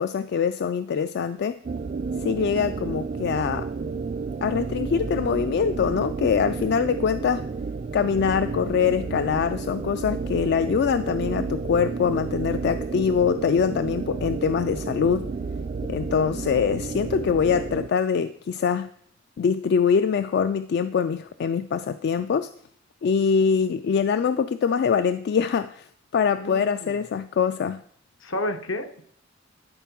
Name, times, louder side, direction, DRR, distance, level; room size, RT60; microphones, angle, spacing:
voice 1, 0.0-1.6 2.2-3.7 4.4-7.5 7.9-15.3 15.9-18.9 19.4-22.5 23.0-25.9 26.1-27.8, left 6 dB, 55° left, 12 dB, 0.3 m, -23 dB
sound 1, 1.7-17.9, right 4 dB, 40° right, 0.3 m, -31 dB
voice 2, 26.4-27.0 28.2-29.0, left 1 dB, 75° left, 7 dB, 1.0 m, -31 dB
11.5 x 4.6 x 5.9 m, 0.64 s
head